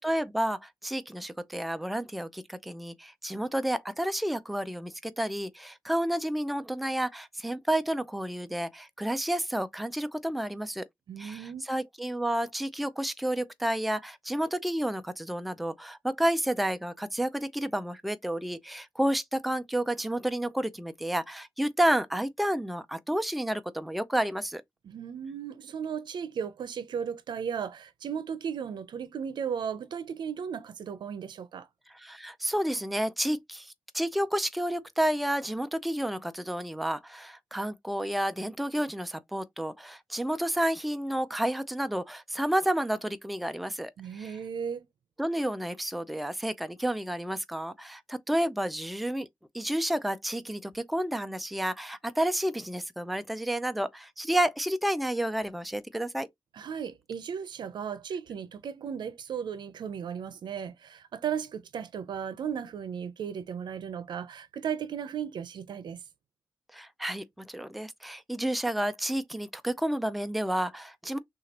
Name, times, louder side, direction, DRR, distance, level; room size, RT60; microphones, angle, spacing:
voice 1, 0.0-10.8 11.2-24.6 31.9-44.4 45.2-49.3 49.5-56.3 66.7-71.2, right 1 dB, ahead, 0.4 m, -30 dB
voice 2, 11.1-11.6 24.8-31.7 44.0-44.9 56.5-66.0, right 7 dB, 80° right, 0.6 m, -35 dB
6.1 x 2.4 x 2.9 m
wide cardioid pair, 140°, 8 cm